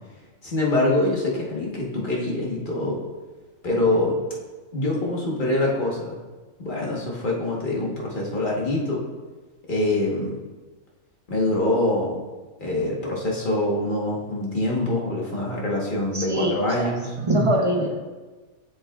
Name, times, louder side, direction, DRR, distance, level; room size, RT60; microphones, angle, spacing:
voice 1, 0.4-3.0 3.6-4.2 4.7-6.2 6.6-9.1 9.7-10.4 11.3-12.2 12.6-17.0, left 1 dB, 35° left, -3 dB, 1.3 m, -24 dB
voice 2, 16.1-18.0, right 1 dB, 40° right, 1 dB, 0.5 m, -24 dB
7.3 x 7.1 x 2.3 m, 1.3 s
omnidirectional pair, 1.5 m